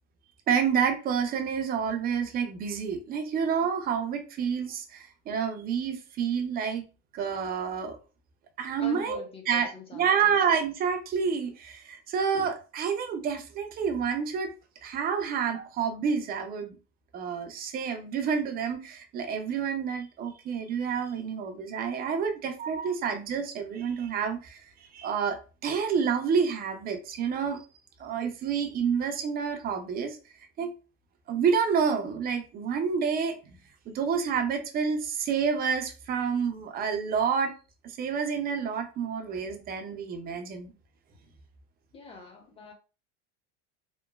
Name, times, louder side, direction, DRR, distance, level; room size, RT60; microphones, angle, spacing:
voice 1, 0.5-6.8 7.1-8.0 8.6-14.5 14.8-16.8 17.1-27.6 28.0-30.2 30.6-30.7 31.3-33.4 33.9-37.5 37.8-40.7, right 6 dB, 25° right, 0.4 m, -29 dB
voice 2, 8.8-10.3 41.9-42.7, left 4 dB, 15° left, 0.6 m, -45 dB
2.9 x 2.1 x 2.2 m
supercardioid pair, 125°, 36 cm